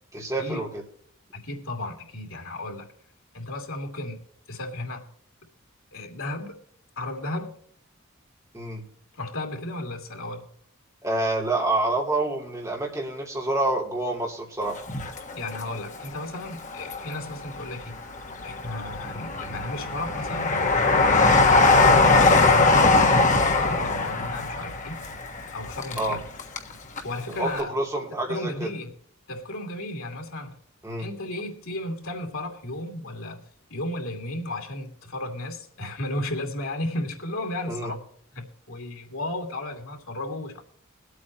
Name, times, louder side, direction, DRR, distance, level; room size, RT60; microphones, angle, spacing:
voice 1, 0.1-0.8 8.5-8.8 11.0-14.8 26.0-26.2 27.3-28.7 30.8-31.1 37.7-37.9, right 2 dB, 15° right, 3.1 m, -27 dB
voice 2, 1.3-2.9 3.3-5.1 5.9-6.6 7.0-7.5 9.1-10.5 15.3-18.0 18.4-21.6 22.2-25.1 25.5-26.2 27.0-27.7 28.3-28.9 29.3-30.5 31.0-33.4 33.7-38.0 38.3-40.6, left 2 dB, 85° left, 2.7 m, -34 dB
Train, 14.8-16.0 16.5-17.4 17.9-26.7 27.0-27.1, left 3 dB, 35° left, 1.4 m, -21 dB
22.5 x 8.5 x 3.0 m
head